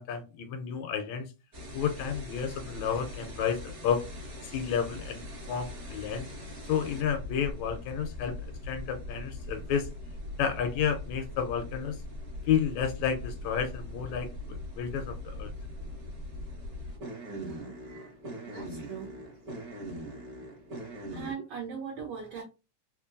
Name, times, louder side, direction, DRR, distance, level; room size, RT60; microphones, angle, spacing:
voice 1, 0.0-1.3 1.7-4.0 4.4-6.3 6.6-9.9 10.4-12.0 12.4-15.5, left 7 dB, 80° left, 6 dB, 1.7 m, -31 dB
sound 1, 1.5-21.3, left 1 dB, 55° right, 1.0 m, -41 dB
voice 2, 17.3-18.1 18.5-19.1 21.1-22.4, right 6 dB, 70° right, 0 dB, 1.5 m, -40 dB
4.4 x 2.9 x 2.4 m, 0.29 s
omnidirectional pair, 3.4 m